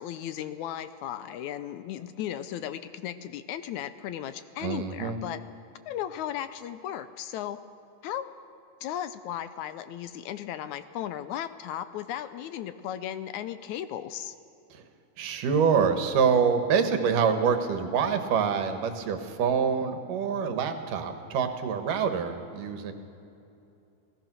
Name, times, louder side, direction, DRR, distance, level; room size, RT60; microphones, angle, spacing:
voice 1, 0.0-5.4 5.9-7.6 8.0-8.3 8.8-14.3, left 11 dB, 75° left, 12 dB, 1.9 m, -36 dB
voice 2, 4.6-5.2 14.7-14.8 15.2-22.9, right 6 dB, 85° right, 7 dB, 3.0 m, -26 dB
29.5 x 18.0 x 6.2 m, 2.7 s
omnidirectional pair, 3.7 m